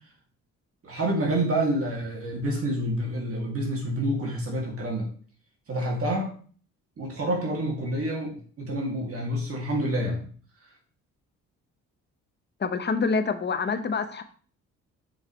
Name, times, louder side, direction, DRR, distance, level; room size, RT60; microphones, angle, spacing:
voice 1, 0.8-5.1 5.7-6.3 7.0-10.3, right 1 dB, 50° right, -1 dB, 2.6 m, -28 dB
voice 2, 12.6-14.2, left 4 dB, 35° left, 9 dB, 0.9 m, -26 dB
7.0 x 6.4 x 3.2 m, 0.43 s
cardioid pair, 90°, 30 cm